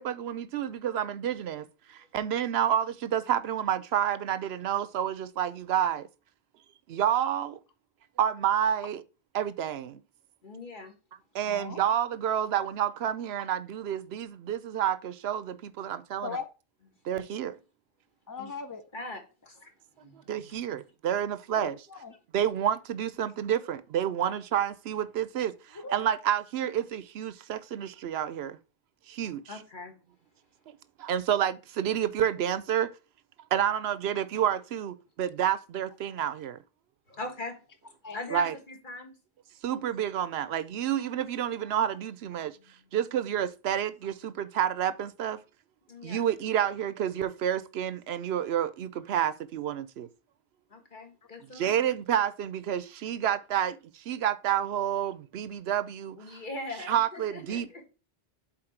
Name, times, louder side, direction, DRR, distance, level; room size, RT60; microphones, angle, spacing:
voice 1, 0.0-6.1 6.9-7.6 8.2-9.0 9.3-10.0 11.3-16.4 17.0-17.6 20.1-21.8 22.3-28.6 29.1-29.6 31.0-32.9 33.5-36.6 38.3-38.6 39.6-42.6 42.9-45.4 46.0-50.1 51.5-56.4 56.8-57.7, right 10 dB, 80° right, 0.8 m, -29 dB
voice 2, 10.4-10.9 18.4-18.5 18.9-19.7 20.0-20.5 29.5-29.9 37.1-37.6 38.1-39.1 42.4-42.5 45.9-46.3 50.7-51.9 56.2-57.9, left 2 dB, 50° left, 1.8 m, -41 dB
voice 3, 11.4-11.8 16.2-16.5 18.3-18.8 21.5-22.1 24.2-24.3 25.8-26.0 36.2-36.3 38.0-38.2, left 4 dB, 35° left, 0.3 m, -39 dB
7.7 x 4.2 x 4.4 m
omnidirectional pair, 1.1 m